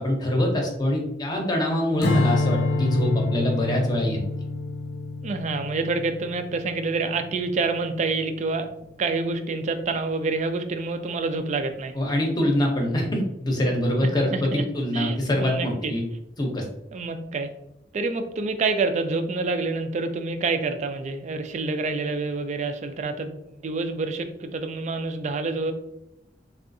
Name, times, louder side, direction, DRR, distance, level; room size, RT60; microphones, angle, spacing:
voice 1, 0.0-4.2 11.9-16.0 16.4-16.6, left 1 dB, 25° left, 0 dB, 0.7 m, -24 dB
Strum, 2.0-8.4, left 3 dB, 65° left, 0.4 m, -28 dB
voice 2, 5.2-8.7 9.0-11.9 14.3-14.6 14.9-15.9 16.9-17.5 17.9-25.7, right 3 dB, 40° right, 8 dB, 0.3 m, -27 dB
3.5 x 2.4 x 2.6 m, 0.84 s
head